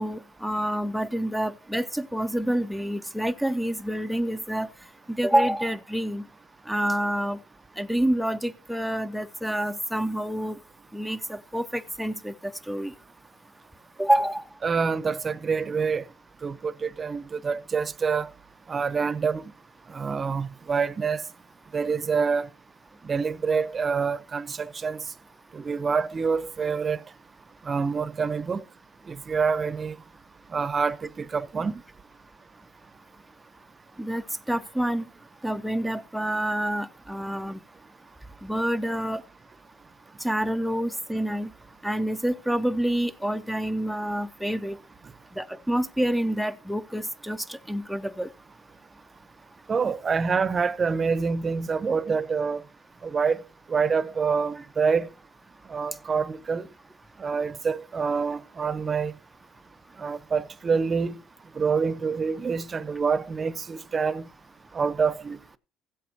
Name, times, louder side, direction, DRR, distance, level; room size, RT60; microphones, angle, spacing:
voice 1, 0.0-4.7 5.1-6.2 6.7-7.4 7.8-10.6 10.9-12.9 14.0-14.4 34.0-34.2 34.5-35.0 35.4-37.6 38.4-39.2 40.2-41.5 41.8-44.8 45.4-48.3, right 1 dB, ahead, 0.6 m, -27 dB
voice 2, 14.6-16.0 16.4-18.3 18.7-19.4 19.9-21.2 21.7-22.5 23.0-25.0 25.5-27.0 27.7-28.6 29.1-29.9 30.5-31.8 49.7-52.6 53.0-53.4 53.7-55.1 55.7-56.7 57.2-59.1 60.0-61.2 61.6-64.2 64.7-65.4, right 5 dB, 35° right, 0.7 m, -26 dB
15.5 x 8.3 x 2.8 m
cardioid pair, 100°, 0 cm